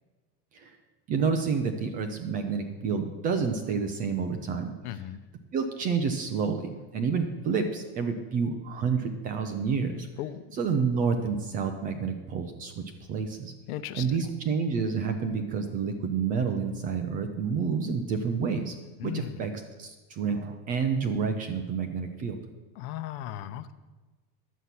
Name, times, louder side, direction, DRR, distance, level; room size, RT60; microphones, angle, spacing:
voice 1, 1.1-4.7 5.5-10.1 10.5-12.8 13.1-13.5 13.9-18.7 19.0-19.5 19.8-22.4, right 5 dB, 20° right, 6 dB, 0.3 m, -29 dB
voice 2, 4.8-5.2 10.2-10.6 13.7-14.2 19.0-19.4 22.8-23.7, left 12 dB, 85° left, 12 dB, 0.9 m, -36 dB
11.0 x 8.1 x 5.8 m, 1.3 s
cardioid pair, 165°, 44 cm